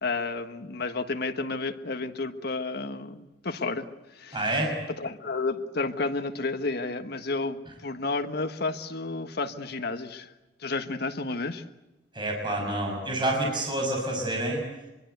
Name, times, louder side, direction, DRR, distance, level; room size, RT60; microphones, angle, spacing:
voice 1, 0.0-3.9 4.1-4.6 5.0-10.3 10.6-11.6, left 3 dB, 60° left, 7 dB, 1.5 m, -31 dB
voice 2, 4.3-4.8 12.1-14.6, right 1 dB, 25° right, 1 dB, 6.3 m, -28 dB
25.0 x 23.5 x 8.1 m, 1.0 s
head